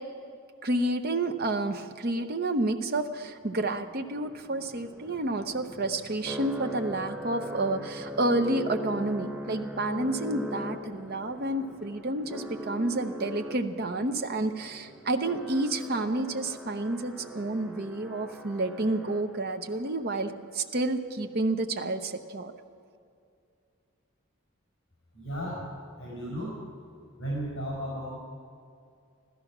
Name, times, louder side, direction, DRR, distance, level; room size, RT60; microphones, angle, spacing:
voice 1, 0.6-22.5, right 2 dB, 45° right, 7 dB, 0.8 m, -30 dB
sound 1, 3.4-19.7, equal, 5° right, 0.8 m, -41 dB
voice 2, 25.1-26.6 27.2-28.1, equal, 65° left, -4 dB, 4.6 m, -35 dB
15.0 x 13.5 x 6.0 m, 2.4 s
head